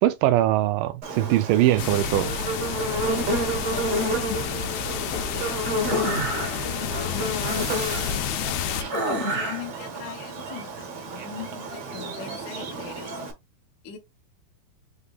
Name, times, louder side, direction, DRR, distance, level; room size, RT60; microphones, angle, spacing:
voice 1, 0.0-2.3, right 14 dB, 80° right, 2.0 m, -21 dB
Buzz, 1.0-13.3, right 1 dB, 60° right, 1.7 m, -31 dB
sound 1, 1.8-8.8, left 10 dB, 90° left, 2.4 m, -30 dB
voice 2, 3.1-5.6 6.0-13.3 13.8-14.0, left 7 dB, 70° left, 1.9 m, -41 dB
sound 2, 5.9-6.8 7.4-8.3 8.9-9.7, right 1 dB, 40° right, 1.2 m, -29 dB
8.1 x 2.7 x 2.3 m
omnidirectional pair, 4.2 m